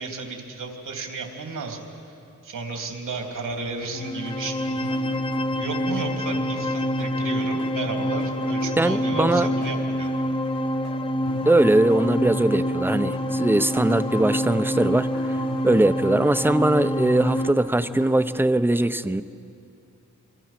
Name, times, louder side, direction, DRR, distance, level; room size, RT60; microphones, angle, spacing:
voice 1, 0.0-1.8 2.4-4.6 5.6-10.2, right 3 dB, 80° right, 2 dB, 3.4 m, -33 dB
sound 1, 3.0-18.2, left 2 dB, 80° left, 6.4 m, -39 dB
sound 2, 3.9-17.5, equal, 15° left, 0.9 m, -27 dB
voice 2, 8.8-9.5 11.5-15.4 15.6-19.2, right 1 dB, 5° right, 13 dB, 0.7 m, -21 dB
28.5 x 24.0 x 6.0 m, 2.6 s
cardioid pair, 90°, 31 cm